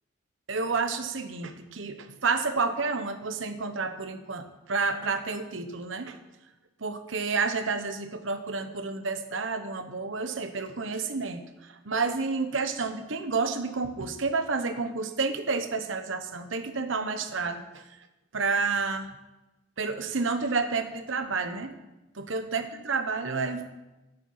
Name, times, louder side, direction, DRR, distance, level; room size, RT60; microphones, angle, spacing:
voice 1, 0.5-6.2 6.8-17.9 18.3-19.1 19.8-21.7 22.2-23.7, right 4 dB, 80° right, 7 dB, 1.0 m, -30 dB
11.5 x 9.1 x 5.6 m, 1.0 s
head